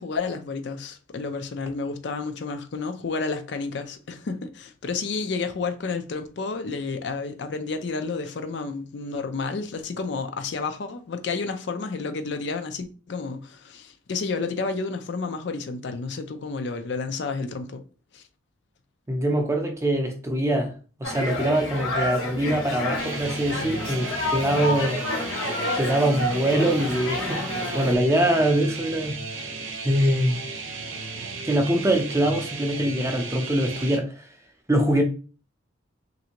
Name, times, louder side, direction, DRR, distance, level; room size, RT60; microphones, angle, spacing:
voice 1, 0.0-17.8 18.1-18.2, left 4 dB, 60° left, 0.4 m, -31 dB
voice 2, 19.1-20.7 21.0-25.0 25.7-29.2 29.8-30.4 31.4-34.2 34.7-35.0, right 1 dB, 15° right, 0.4 m, -23 dB
sound 1, 21.0-28.0, left 1 dB, 85° left, 1.0 m, -29 dB
sound 2, 23.0-34.0, right 4 dB, 75° right, 0.6 m, -35 dB
3.3 x 2.6 x 2.8 m
head